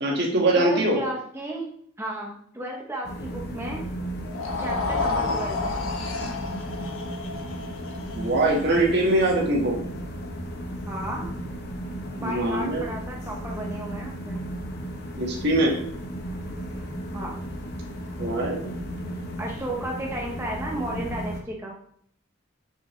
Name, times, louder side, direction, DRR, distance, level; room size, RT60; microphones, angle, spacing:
voice 1, 0.0-1.0 8.2-9.7 12.2-12.9 15.2-15.7 18.2-18.7, right 1 dB, 55° right, -1 dB, 1.7 m, -22 dB
voice 2, 0.6-1.7 2.0-3.9 4.6-5.8 10.9-11.3 12.1-14.4 17.1-17.3 19.4-21.8, right 1 dB, 15° right, -1 dB, 0.9 m, -33 dB
sound 1, 3.0-21.4, equal, 50° left, 1.0 m, -35 dB
sound 2, 4.2-10.5, left 3 dB, 75° left, 1.3 m, -31 dB
6.8 x 6.0 x 3.2 m, 0.64 s
head